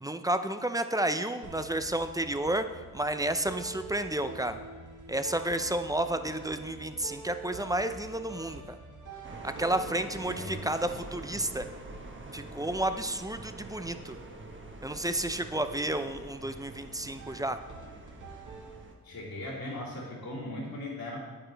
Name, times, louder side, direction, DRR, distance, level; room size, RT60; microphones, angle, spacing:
voice 1, 0.0-2.7 2.9-4.6 5.1-8.8 9.4-11.7 12.3-14.2 14.8-17.6, right 1 dB, 10° right, 9 dB, 0.5 m, -31 dB
sound 1, 1.4-19.2, right 3 dB, 50° right, 1.7 m, -47 dB
Subway Platform Noise with Train Aproach and Stop, 9.2-19.0, right 2 dB, 30° right, 1.2 m, -46 dB
voice 2, 10.2-10.6 19.0-21.2, left 1 dB, 70° left, -5 dB, 3.0 m, -38 dB
8.9 x 8.8 x 3.4 m, 1.4 s
cardioid pair, 60°, 37 cm